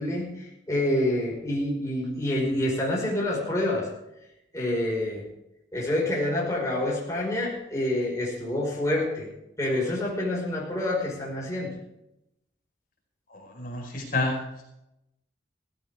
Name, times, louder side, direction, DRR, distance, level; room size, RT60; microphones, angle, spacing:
voice 1, 0.0-3.9 4.5-5.2 5.7-9.3 9.6-11.7, left 1 dB, 15° left, -4 dB, 5.3 m, -27 dB
voice 2, 13.3-14.4, left 2 dB, 45° left, 0 dB, 4.9 m, -29 dB
17.0 x 16.5 x 3.6 m, 0.86 s
head